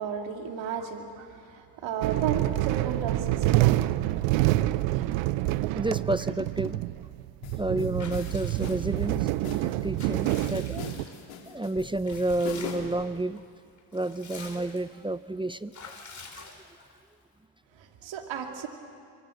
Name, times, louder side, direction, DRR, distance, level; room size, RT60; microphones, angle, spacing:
voice 1, 0.0-3.8 4.9-5.1 17.8-18.7, right 7 dB, 65° right, 4 dB, 2.8 m, -34 dB
sound 1, 2.0-11.0, right 17 dB, 85° right, 0.8 m, -27 dB
voice 2, 5.8-6.8 7.6-9.3 9.6-10.9 11.5-13.4 13.9-15.7 16.3-16.5, right 2 dB, 10° right, 15 dB, 0.6 m, -30 dB
sound 2, 7.4-13.0, left 7 dB, 80° left, 3.2 m, -41 dB
Water / Bathtub (filling or washing) / Liquid, 8.0-9.2 9.7-11.4 12.0-13.0 13.4-13.5 13.8-15.0 15.7-17.0, left 4 dB, 35° left, 4.6 m, -47 dB
26.0 x 23.5 x 7.9 m, 2.3 s
supercardioid pair, 65°, 47 cm